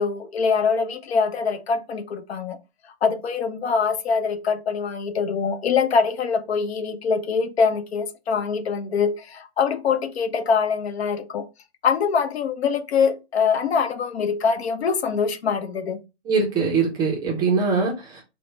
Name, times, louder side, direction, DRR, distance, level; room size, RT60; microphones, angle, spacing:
voice 1, 0.0-2.6 3.0-11.5 11.8-16.0, left 5 dB, 70° left, 0.7 m, -23 dB
voice 2, 16.3-18.2, right 4 dB, 10° right, 0.5 m, -22 dB
4.3 x 2.1 x 3.1 m
hypercardioid pair, 135°, 33 cm